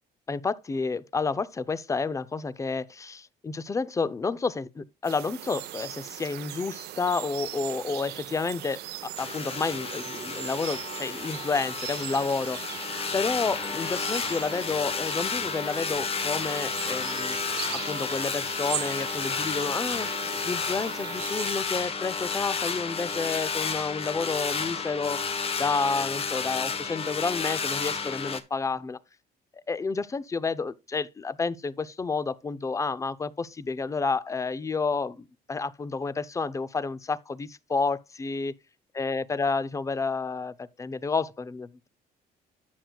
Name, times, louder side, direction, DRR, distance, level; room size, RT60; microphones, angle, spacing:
voice 1, 0.3-12.6 13.1-17.4 17.7-20.1 20.5-25.2 25.6-29.0 29.7-38.5 39.0-41.9, left 4 dB, 20° left, 0.5 m, -30 dB
sound 1, 5.0-21.6, right 14 dB, 75° right, 0.8 m, -39 dB
sound 2, 9.2-28.4, left 5 dB, 35° left, 1.0 m, -31 dB
11.0 x 7.7 x 2.3 m
cardioid pair, 110°, 17 cm